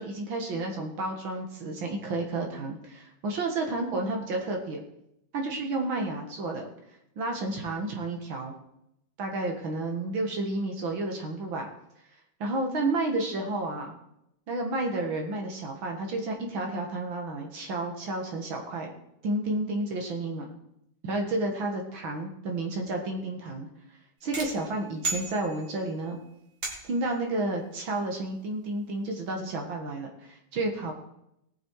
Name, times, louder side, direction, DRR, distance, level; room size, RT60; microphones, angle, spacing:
voice 1, 0.0-4.8 5.3-6.7 7.2-8.5 9.2-11.7 12.4-14.0 14.5-18.9 19.2-20.5 21.0-23.7 24.2-26.2 26.8-30.9, right 2 dB, 80° right, 1 dB, 2.4 m, -31 dB
sound 1, 24.3-26.0 26.6-27.2, right 3 dB, 55° right, 2.9 m, -35 dB
19.0 x 6.6 x 4.7 m, 0.80 s
omnidirectional pair, 2.1 m